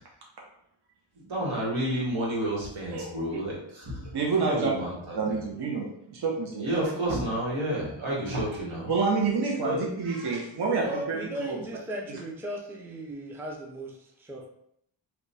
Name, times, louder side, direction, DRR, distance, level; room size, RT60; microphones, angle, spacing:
voice 1, 1.2-4.1 4.4-5.2 6.6-8.9 9.6-9.9 10.8-10.9, right 1 dB, 75° right, -4 dB, 1.4 m, -30 dB
voice 2, 4.1-4.7 5.1-5.9 6.1-6.6 8.9-11.6, right 4 dB, 55° right, -2 dB, 0.8 m, -28 dB
voice 3, 10.5-14.5, right 1 dB, 5° right, -1 dB, 0.4 m, -37 dB
2.9 x 2.2 x 4.0 m, 0.72 s
wide cardioid pair, 105°, 46 cm